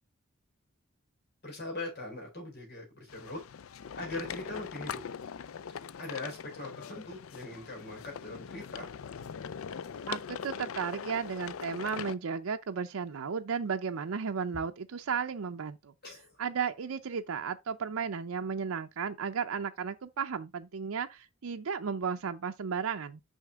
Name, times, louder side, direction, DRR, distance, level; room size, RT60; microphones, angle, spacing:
voice 1, 1.4-3.4 3.9-5.0 6.0-8.9 16.0-16.4, left 2 dB, 50° left, 3.8 m, -41 dB
sound 1, 3.1-12.2, left 7 dB, 80° left, 0.4 m, -41 dB
voice 2, 10.1-15.9 16.4-23.2, right 6 dB, 85° right, 0.5 m, -34 dB
6.4 x 5.7 x 3.5 m
head